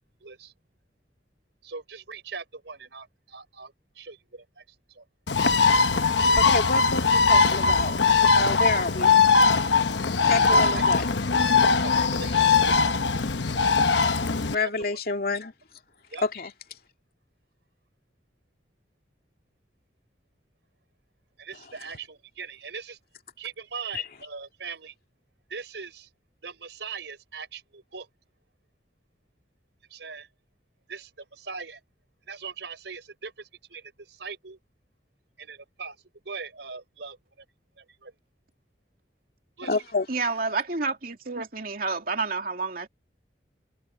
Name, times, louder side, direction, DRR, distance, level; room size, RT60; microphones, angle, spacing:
voice 1, 0.2-0.5 1.6-5.0 10.2-10.9 11.8-12.7 14.5-15.0 16.1-16.2 21.4-23.0 23.4-24.9 25.5-26.1 26.4-28.1 29.9-30.3 30.9-31.8 32.2-34.6 35.4-36.0 36.2-37.4 37.8-38.1 39.6-39.8, right 5 dB, 85° right, 4.3 m, -41 dB
Bird, 5.3-14.5, left 4 dB, 85° left, 1.0 m, -21 dB
voice 2, 6.4-9.1 10.2-11.1 14.4-15.5 16.2-16.5 39.7-40.0, left 3 dB, 55° left, 2.6 m, -28 dB
voice 3, 40.1-42.9, right 4 dB, 55° right, 2.8 m, -29 dB
open air
head